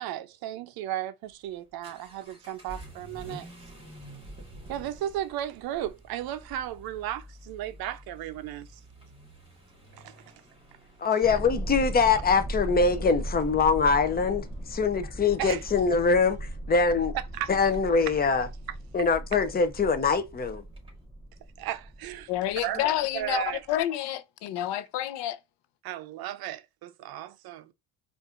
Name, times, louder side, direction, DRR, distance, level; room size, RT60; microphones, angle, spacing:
voice 1, 0.0-3.5 4.7-8.8 10.0-10.4 15.4-15.6 17.1-17.8 18.1-18.2 21.6-22.3 22.6-23.6 25.8-27.7, right 12 dB, 60° right, 0.5 m, -35 dB
Vehicle / Accelerating revving vroom, 1.2-21.0, right 1 dB, 15° right, 2.0 m, -51 dB
voice 2, 11.0-17.1 17.5-18.5 18.9-20.6, left 4 dB, 20° left, 0.5 m, -23 dB
sound 1, 11.2-23.7, right 1 dB, 5° left, 0.9 m, -38 dB
voice 3, 22.3-25.4, left 12 dB, 70° left, 0.6 m, -29 dB
4.7 x 2.5 x 2.4 m
cardioid pair, 120°, 43 cm